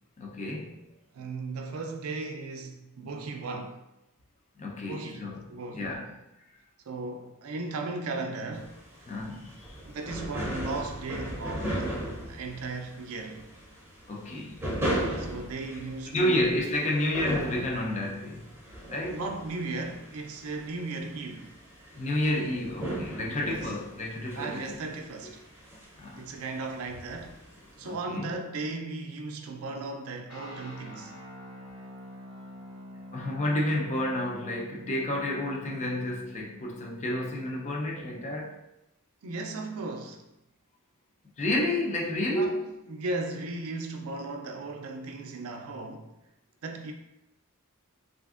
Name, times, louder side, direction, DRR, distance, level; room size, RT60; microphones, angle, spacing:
voice 1, 0.2-0.8 4.6-6.2 9.1-9.8 14.1-14.7 16.1-18.6 18.9-19.2 22.0-24.8 26.0-26.3 27.8-28.3 33.1-38.6 41.4-42.8, left 1 dB, 30° left, 0.5 m, -30 dB
voice 2, 1.1-3.8 4.9-5.9 6.9-8.8 9.8-13.5 15.2-16.5 19.1-21.6 23.2-23.7 24.4-25.4 26.2-27.4 27.8-31.1 35.7-35.9 39.2-40.2 42.4-42.6 42.9-46.1 46.6-46.9, right 3 dB, 65° right, 0.4 m, -36 dB
sound 1, 8.5-27.9, right 1 dB, 10° right, 0.6 m, -37 dB
sound 2, 30.3-38.5, left 1 dB, 70° left, 1.3 m, -47 dB
3.3 x 2.5 x 2.4 m
head